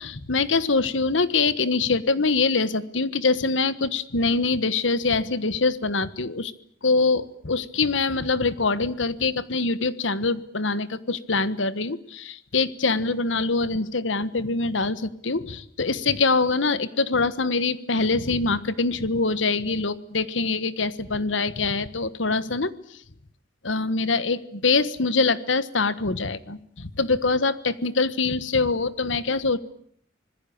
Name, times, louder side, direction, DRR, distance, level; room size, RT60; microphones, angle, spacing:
voice 1, 0.0-6.5 6.8-23.0 23.6-29.6, left 3 dB, 90° left, 15 dB, 1.4 m, -24 dB
26.0 x 20.5 x 8.7 m, 0.65 s
head